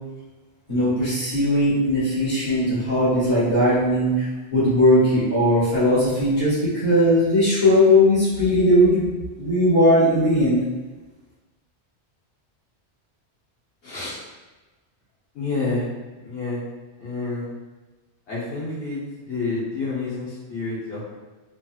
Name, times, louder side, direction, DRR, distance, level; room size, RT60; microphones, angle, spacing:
voice 1, 0.7-4.3 4.5-9.0 9.4-10.6, left 1 dB, 30° left, -12 dB, 1.5 m, -18 dB
voice 2, 13.8-14.2 15.3-15.8 16.2-16.6 17.0-17.5 18.3-21.0, left 3 dB, 80° left, -9 dB, 1.2 m, -29 dB
3.1 x 2.8 x 2.3 m, 1.2 s
omnidirectional pair, 1.1 m